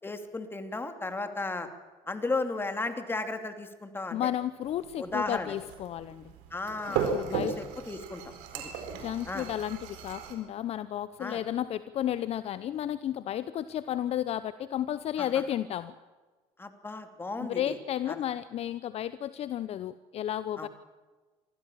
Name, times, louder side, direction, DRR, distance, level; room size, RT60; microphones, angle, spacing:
voice 1, 0.0-1.7 2.1-4.2 5.0-5.5 6.5-8.7 9.3-9.5 11.2-11.4 15.2-15.3 16.6-17.8 18.1-18.2 20.6-20.7, left 3 dB, 15° left, 7 dB, 2.8 m, -35 dB
voice 2, 4.1-6.3 6.9-7.5 8.9-15.9 17.5-20.7, left 11 dB, 50° left, 14 dB, 0.8 m, -33 dB
sound 1, 4.6-10.3, right 7 dB, 75° right, 4.3 m, -36 dB
24.5 x 15.5 x 7.4 m, 1.4 s
supercardioid pair, 90°, 14 cm